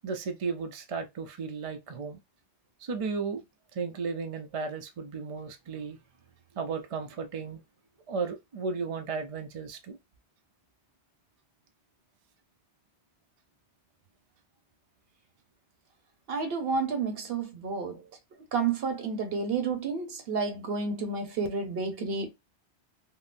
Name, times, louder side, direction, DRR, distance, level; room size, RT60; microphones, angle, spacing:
voice 1, 0.0-2.2 2.8-3.4 3.7-6.0 6.5-7.6 8.1-10.0, right 5 dB, 45° right, 0.5 m, -34 dB
voice 2, 16.3-18.0 18.5-22.3, right 4 dB, 65° right, 1.0 m, -30 dB
3.7 x 2.0 x 2.4 m
omnidirectional pair, 1.1 m